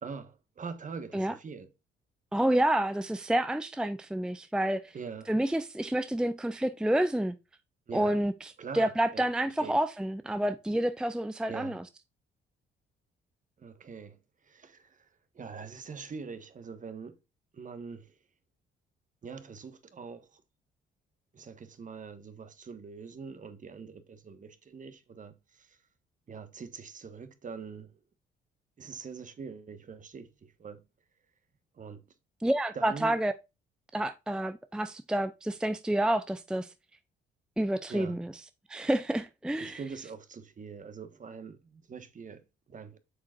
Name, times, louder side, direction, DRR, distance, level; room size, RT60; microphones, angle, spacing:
voice 1, 0.0-1.7 4.9-5.3 7.9-8.2 8.6-9.3 9.6-9.8 11.5-11.8 13.6-15.1 15.3-17.2 17.5-18.2 19.2-20.4 21.3-25.8 26.3-28.0 28.8-30.8 31.7-32.0 32.7-33.2 37.9-38.2 39.6-43.0, right 5 dB, 40° right, 1.3 m, -43 dB
voice 2, 2.3-4.9 5.3-7.4 7.9-8.5 8.7-11.8 32.4-33.3 33.9-36.7 37.6-38.3 38.7-39.8, right 1 dB, 5° right, 0.5 m, -29 dB
8.0 x 6.3 x 2.4 m
cardioid pair, 90°, 20 cm